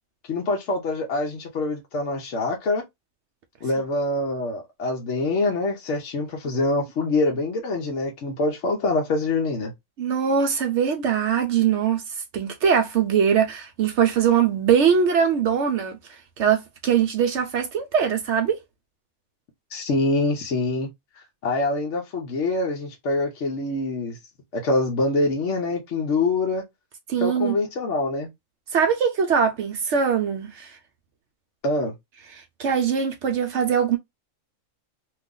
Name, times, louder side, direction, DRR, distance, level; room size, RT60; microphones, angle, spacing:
voice 1, 0.3-2.8 3.6-9.7 19.7-20.9 21.1-24.2 24.5-26.6 27.2-28.3 31.6-31.9, left 2 dB, 60° left, 1.0 m, -25 dB
voice 2, 10.0-16.0 16.4-18.6 27.1-27.6 28.7-30.8 32.3-34.0, right 7 dB, 65° right, 0.8 m, -22 dB
2.9 x 2.4 x 3.7 m
omnidirectional pair, 1.4 m